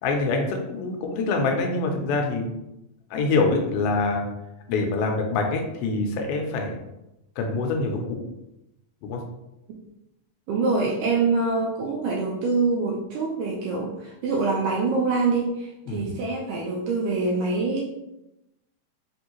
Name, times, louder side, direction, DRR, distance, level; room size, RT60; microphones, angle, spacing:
voice 1, 0.0-2.5 3.1-4.3 4.7-6.7 7.4-8.2 9.0-9.2 15.9-16.1, left 3 dB, 85° left, 2 dB, 2.5 m, -25 dB
voice 2, 10.5-17.8, right 3 dB, 85° right, -2 dB, 1.9 m, -25 dB
5.5 x 2.6 x 2.9 m, 0.90 s
omnidirectional pair, 4.2 m